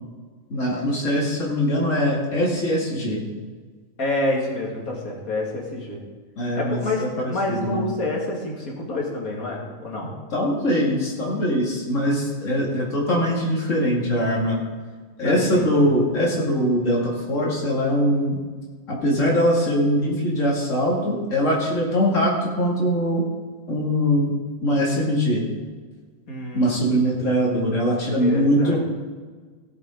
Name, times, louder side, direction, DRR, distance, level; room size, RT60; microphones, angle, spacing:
voice 1, 0.5-3.3 6.4-7.1 7.5-7.9 10.3-14.6 15.2-18.4 18.9-23.2 23.7-24.3 24.6-25.4 26.5-28.8, equal, 60° left, -4 dB, 2.9 m, -22 dB
voice 2, 4.0-6.0 6.6-10.1 15.2-15.7 26.3-27.0 28.2-28.8, left 2 dB, 80° left, -2 dB, 2.8 m, -28 dB
18.0 x 7.5 x 3.9 m, 1.5 s
omnidirectional pair, 1.5 m